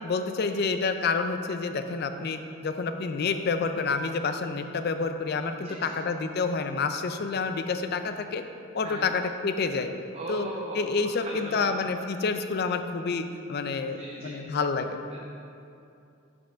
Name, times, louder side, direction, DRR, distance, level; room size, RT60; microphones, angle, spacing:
voice 1, 0.0-8.4 8.7-9.9 10.3-10.5 10.8-15.0, left 4 dB, 50° left, 8 dB, 0.4 m, -28 dB
voice 2, 5.6-5.9 8.8-9.1 10.1-11.7 13.7-14.4 15.1-15.2, right 1 dB, 30° right, -3 dB, 0.6 m, -39 dB
5.7 x 5.4 x 5.5 m, 2.6 s
head